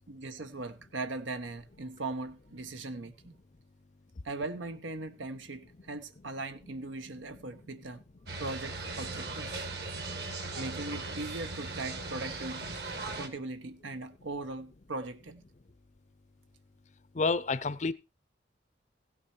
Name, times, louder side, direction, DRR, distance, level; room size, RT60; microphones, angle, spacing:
voice 1, 0.1-3.4 4.2-8.0 8.4-9.6 10.6-12.8 13.0-15.4, right 2 dB, 85° right, 0.9 m, -39 dB
sound 1, 8.3-13.3, right 3 dB, 60° right, 1.8 m, -38 dB
voice 2, 17.1-17.9, left 4 dB, 40° left, 0.5 m, -29 dB
16.0 x 6.4 x 4.3 m
head